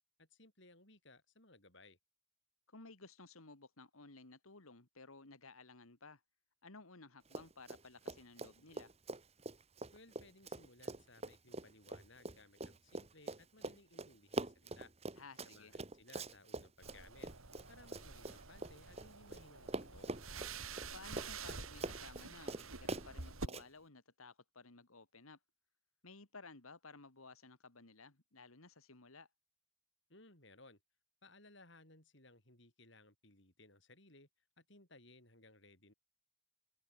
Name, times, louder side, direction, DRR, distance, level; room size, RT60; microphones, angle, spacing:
voice 1, 0.2-2.0 9.9-14.9 15.4-17.3 17.7-20.1 30.1-30.8 31.2-34.3 34.6-35.9, left 2 dB, 60° left, 7.9 m, -62 dB
voice 2, 2.7-6.2 6.6-8.9 15.2-15.7 20.9-25.4 26.0-29.3, left 3 dB, 85° left, 2.5 m, -56 dB
Run, 7.3-19.4 19.7-23.6, right 2 dB, 30° right, 1.5 m, -44 dB
sound 1, 16.8-23.5, right 4 dB, 85° right, 4.3 m, -48 dB
open air
head